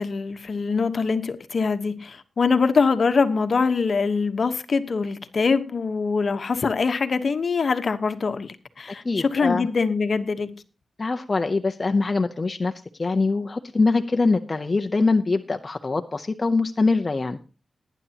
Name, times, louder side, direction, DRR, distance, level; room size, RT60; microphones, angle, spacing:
voice 1, 0.0-10.5, left 4 dB, 55° left, 1.1 m, -23 dB
voice 2, 9.0-9.7 11.0-12.7 13.0-17.4, left 3 dB, 35° left, 0.7 m, -23 dB
19.0 x 10.0 x 2.9 m
wide cardioid pair, 100°, 0 cm